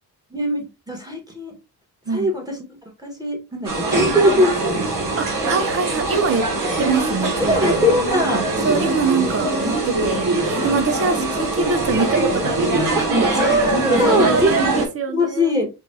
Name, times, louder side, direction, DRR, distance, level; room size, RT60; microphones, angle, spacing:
voice 1, 0.3-1.5 2.1-4.8 7.4-8.5 12.9-13.1 13.3-14.5 15.1-15.7, left 1 dB, 10° right, 1.6 m, -21 dB
sound 1, 3.6-14.9, right 2 dB, 55° right, 1.8 m, -22 dB
voice 2, 5.2-6.4 6.8-7.8 8.6-12.6 14.0-15.6, right 4 dB, 35° right, 0.9 m, -23 dB
5.9 x 2.6 x 2.8 m
cardioid pair, 110°, 39 cm